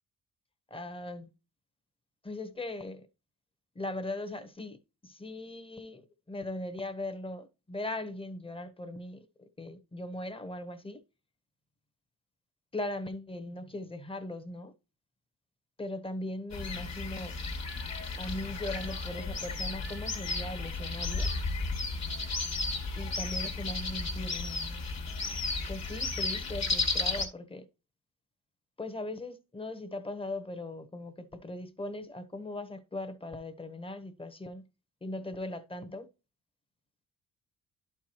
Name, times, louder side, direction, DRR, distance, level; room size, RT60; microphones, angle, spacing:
voice 1, 0.7-1.3 2.2-3.1 3.7-4.8 5.0-9.2 9.6-11.0 12.7-14.7 15.8-17.3 18.2-21.3 23.0-24.9 25.7-27.7 28.8-34.6 35.0-36.1, left 1 dB, 15° left, 1.0 m, -39 dB
sound 1, 16.5-27.3, left 3 dB, 45° left, 1.6 m, -33 dB
11.0 x 4.6 x 3.0 m
cardioid pair, 80°, 38 cm